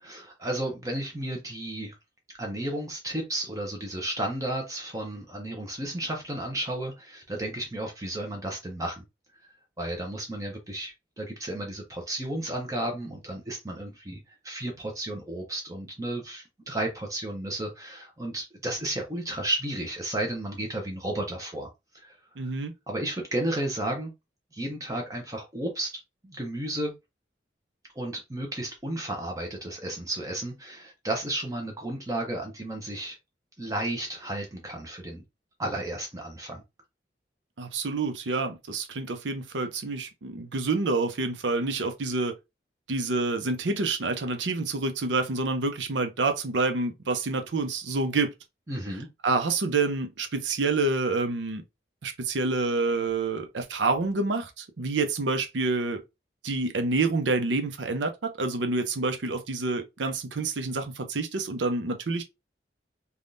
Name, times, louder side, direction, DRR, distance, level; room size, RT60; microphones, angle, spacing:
voice 1, 0.0-1.9 2.4-9.0 9.4-21.7 21.9-22.1 22.9-24.1 24.5-26.9 28.0-33.2 33.6-35.2 35.6-36.6 48.7-49.1, right 1 dB, 20° right, 0.6 m, -33 dB
voice 2, 22.4-22.7 37.6-42.3 42.9-48.3 49.2-51.6 52.0-56.0 56.4-62.2, right 3 dB, 85° right, 0.6 m, -28 dB
3.5 x 2.3 x 2.6 m
head